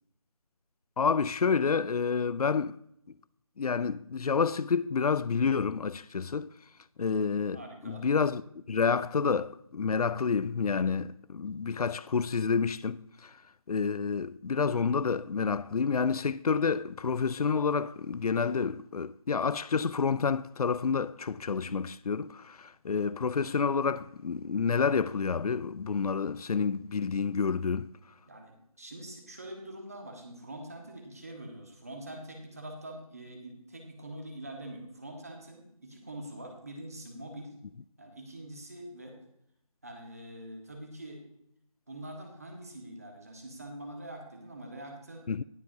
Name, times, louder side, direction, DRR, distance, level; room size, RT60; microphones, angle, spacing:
voice 1, 1.0-2.8 3.6-6.5 7.0-8.4 8.7-13.4 13.7-27.9 45.3-45.4, left 5 dB, 90° left, 0.4 m, -29 dB
voice 2, 7.5-8.1 28.2-37.5 38.0-39.2 39.8-41.2 41.9-45.3, right 1 dB, 25° right, 1.5 m, -44 dB
19.0 x 7.0 x 2.7 m
figure-of-eight pair, 175°, 19 cm